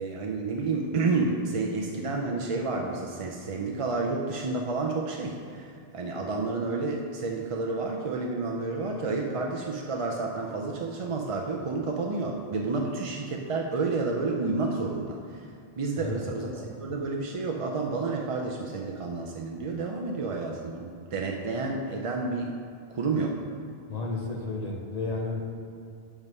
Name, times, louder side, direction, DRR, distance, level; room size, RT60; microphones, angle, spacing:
voice 1, 0.0-15.5 15.8-22.5 22.9-23.4, right 3 dB, 45° right, 0 dB, 0.5 m, -30 dB
voice 2, 16.0-16.3 23.9-25.5, left 3 dB, 45° left, -1 dB, 0.8 m, -32 dB
6.0 x 5.4 x 5.4 m, 2.4 s
omnidirectional pair, 1.0 m